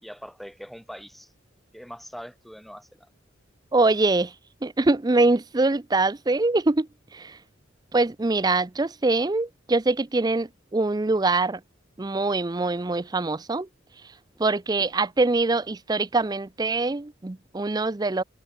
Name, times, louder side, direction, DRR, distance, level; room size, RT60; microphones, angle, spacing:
voice 1, 0.0-1.3 1.7-3.1, equal, ahead, 3.5 m, -42 dB
voice 2, 3.7-4.3 4.6-7.4 7.9-11.6 12.0-13.7 14.4-18.2, right 3 dB, 20° right, 0.5 m, -23 dB
head